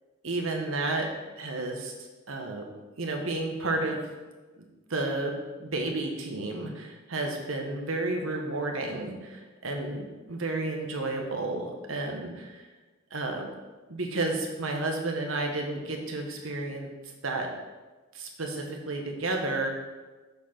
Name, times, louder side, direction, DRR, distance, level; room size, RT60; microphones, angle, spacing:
voice 1, 0.2-1.1 1.4-2.6 3.0-4.1 4.6-4.7 4.9-12.6 13.1-13.5 13.9-17.5 18.1-19.7, right 2 dB, 85° right, 2 dB, 1.3 m, -32 dB
8.1 x 4.5 x 5.9 m, 1.2 s
head